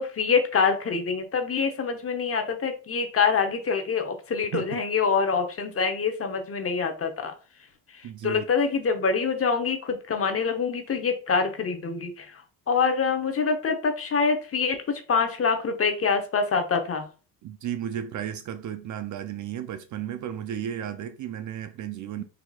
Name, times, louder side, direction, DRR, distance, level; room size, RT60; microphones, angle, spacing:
voice 1, 0.0-7.3 8.2-12.4 12.7-17.1, left 5 dB, 30° left, 0.8 m, -25 dB
voice 2, 8.0-8.5 17.4-22.2, right 10 dB, 45° right, 0.4 m, -34 dB
4.1 x 2.8 x 2.2 m
supercardioid pair, 80°, 43 cm